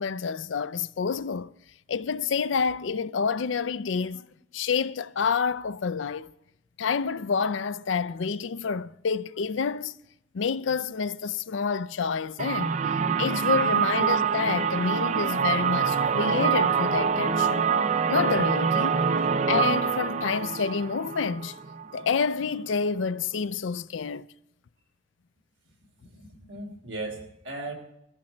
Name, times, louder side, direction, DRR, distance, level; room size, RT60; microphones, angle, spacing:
voice 1, 0.0-1.5 1.9-4.2 4.5-6.3 6.8-9.9 10.3-12.8 13.2-17.7 18.1-19.1 19.5-21.5 21.9-24.3, left 5 dB, 85° left, 0.5 m, -28 dB
sound 1, 12.4-22.1, right 6 dB, 40° right, 0.5 m, -25 dB
voice 2, 26.1-27.7, right 2 dB, 85° right, 3.4 m, -37 dB
20.0 x 14.5 x 4.4 m
head